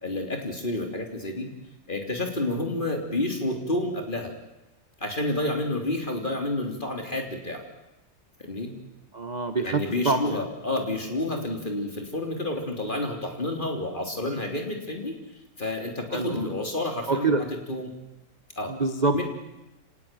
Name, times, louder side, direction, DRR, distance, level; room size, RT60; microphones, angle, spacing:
voice 1, 0.0-1.5 1.9-4.3 5.0-7.6 8.4-8.7 9.6-15.2 15.6-17.3 17.7-17.9 18.6-18.7 19.1-19.2, left 2 dB, 25° left, 3 dB, 3.5 m, -29 dB
voice 2, 9.1-10.5 11.3-11.4 16.1-16.5 17.1-17.4 18.7-19.2, right 3 dB, 30° right, 9 dB, 0.9 m, -26 dB
25.5 x 19.0 x 9.2 m, 0.97 s
omnidirectional pair, 2.1 m